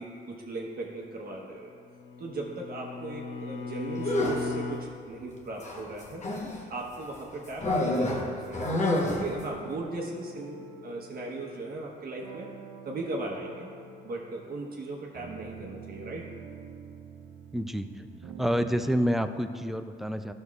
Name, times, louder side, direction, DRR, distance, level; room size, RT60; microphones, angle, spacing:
voice 1, 0.0-1.7 2.2-6.2 6.7-8.7 9.1-12.5 12.8-13.7 14.0-16.3, right 2 dB, 50° right, -2 dB, 1.0 m, -37 dB
Bowed string instrument, 1.5-4.9, left 4 dB, 75° left, 0.7 m, -37 dB
sound 1, 4.0-4.6 5.6-6.6 7.6-9.4, left 1 dB, 35° left, 1.1 m, -28 dB
sound 2, 8.0-19.0, right 5 dB, 85° right, 0.8 m, -47 dB
voice 2, 17.5-18.1 18.4-20.3, equal, ahead, 8 dB, 0.3 m, -28 dB
12.0 x 6.4 x 2.4 m, 2.3 s
cardioid pair, 90°, 20 cm